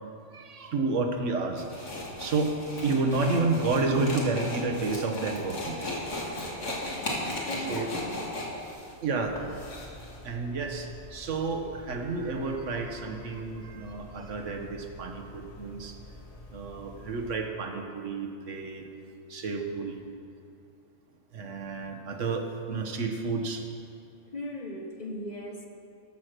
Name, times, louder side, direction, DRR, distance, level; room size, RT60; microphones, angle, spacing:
voice 1, 0.3-6.0 7.7-7.8 9.0-9.4 10.2-16.0 16.5-18.9 19.3-20.1 21.3-23.6, right 3 dB, 75° right, 4 dB, 1.4 m, -30 dB
sound 1, 1.6-10.2, left 1 dB, 75° left, 2.2 m, -36 dB
voice 2, 7.3-8.2 24.3-25.7, left 1 dB, 35° left, 1 dB, 1.0 m, -37 dB
sound 2, 9.2-17.4, left 1 dB, 60° left, 1.8 m, -48 dB
13.5 x 6.0 x 6.6 m, 2.7 s
omnidirectional pair, 1.3 m